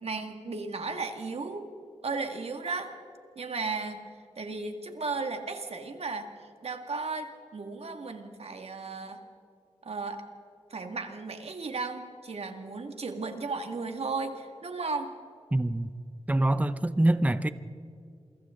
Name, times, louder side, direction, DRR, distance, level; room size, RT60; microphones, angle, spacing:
voice 1, 0.0-1.7 2.0-2.9 3.4-4.1 4.4-6.3 6.6-9.2 9.8-10.2 10.7-15.1, right 4 dB, 60° right, 5 dB, 2.1 m, -35 dB
voice 2, 15.5-15.9 16.3-17.5, right 1 dB, 10° right, 13 dB, 0.7 m, -25 dB
28.0 x 24.0 x 3.8 m, 2.4 s
cardioid pair, 70°, 12 cm